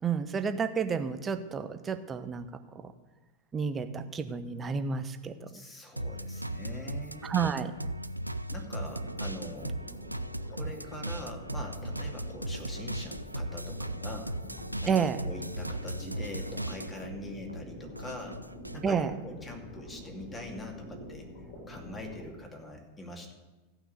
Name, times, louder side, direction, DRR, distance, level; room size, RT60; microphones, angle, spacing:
voice 1, 0.0-2.5 2.7-2.9 3.5-5.6 7.2-7.7 14.9-15.2 18.8-19.1, right 6 dB, 20° right, 9 dB, 0.9 m, -30 dB
voice 2, 5.5-7.3 8.5-9.8 10.5-14.3 14.8-18.4 18.7-19.0 19.2-21.3 21.7-23.3, left 1 dB, 15° left, 2 dB, 2.6 m, -43 dB
sound 1, 6.0-17.2 17.5-18.9, right 1 dB, 90° right, 0.4 m, -37 dB
sound 2, 8.8-22.2, left 1 dB, 50° left, 3.5 m, -47 dB
15.0 x 6.0 x 8.2 m, 1.2 s
figure-of-eight pair, 90°, 0 cm